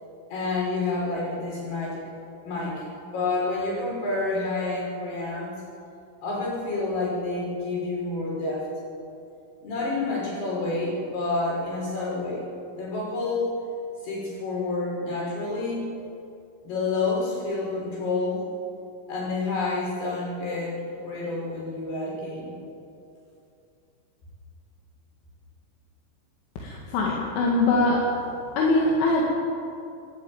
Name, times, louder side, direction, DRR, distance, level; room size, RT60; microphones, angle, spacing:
voice 1, 0.3-2.0 2.4-5.5 6.2-8.7 9.6-13.5 14.0-15.9 16.6-18.4 19.1-22.5, left 3 dB, 60° left, -4 dB, 7.8 m, -29 dB
voice 2, 26.6-28.2 28.6-29.2, left 2 dB, 80° left, -3 dB, 4.6 m, -22 dB
28.5 x 10.5 x 9.1 m, 2.6 s
omnidirectional pair, 5.5 m